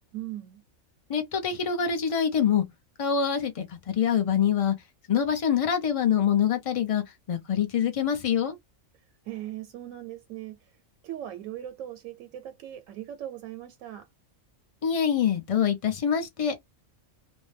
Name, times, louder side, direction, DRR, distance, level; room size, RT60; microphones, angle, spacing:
voice 1, 0.1-0.6 9.2-10.8 11.0-14.1, right 12 dB, 85° right, 1.0 m, -39 dB
voice 2, 1.1-2.6 3.0-4.7 5.1-8.6 14.8-16.5, left 8 dB, 35° left, 0.5 m, -25 dB
2.6 x 2.1 x 3.2 m
omnidirectional pair, 1.4 m